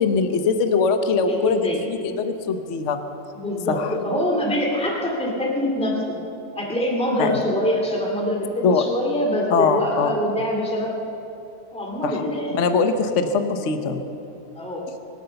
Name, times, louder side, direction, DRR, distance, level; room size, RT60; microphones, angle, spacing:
voice 1, 0.0-1.6 1.9-3.0 3.7-3.9 7.2-7.4 8.6-8.8 9.5-10.1 12.0-12.2 12.5-14.0, left 5 dB, 50° left, 8 dB, 1.1 m, -21 dB
voice 2, 1.3-1.9 3.3-6.0 6.6-10.9 11.7-12.6 14.6-14.9, equal, 5° left, -2 dB, 2.3 m, -24 dB
24.0 x 8.2 x 6.9 m, 2.8 s
omnidirectional pair, 1.8 m